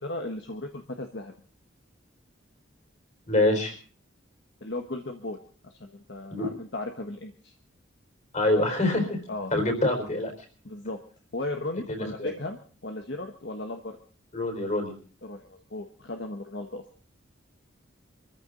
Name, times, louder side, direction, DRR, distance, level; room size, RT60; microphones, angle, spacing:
voice 1, 0.0-1.3 4.6-5.4 5.6-7.5 9.3-9.5 10.6-11.0 11.3-12.6 12.8-14.0 15.2-16.8, left 2 dB, 60° left, 4 dB, 1.3 m, -36 dB
voice 2, 3.3-3.7 6.3-6.5 8.3-9.2 9.5-10.3 11.9-12.3 14.3-14.9, left 1 dB, 35° left, 5 dB, 4.3 m, -25 dB
24.5 x 14.5 x 3.9 m, 0.41 s
head